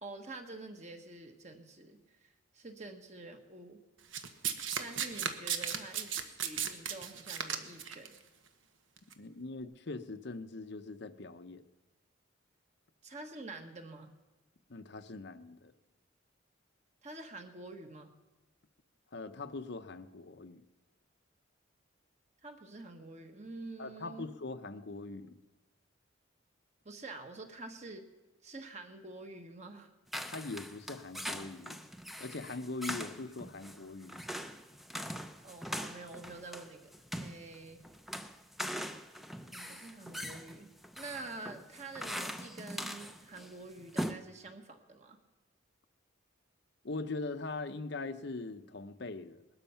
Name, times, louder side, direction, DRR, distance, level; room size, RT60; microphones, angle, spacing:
voice 1, 0.0-3.8 4.8-6.1 6.4-8.2 13.0-14.1 17.0-18.1 22.4-24.3 26.8-28.1 28.4-29.9 35.4-36.9 37.2-37.8 39.5-40.7 41.0-45.2, right 2 dB, 35° right, 1.4 m, -47 dB
Domestic sounds home sounds, 4.1-8.1 9.0-9.1, right 8 dB, 70° right, 1.2 m, -35 dB
voice 2, 9.2-11.6 14.7-15.7 19.1-20.6 23.8-25.3 30.3-31.8 32.2-34.2 46.8-49.4, left 3 dB, 55° left, 0.8 m, -41 dB
sound 1, 30.1-43.5 43.8-44.1, equal, ahead, 0.6 m, -41 dB
20.0 x 12.5 x 5.8 m
head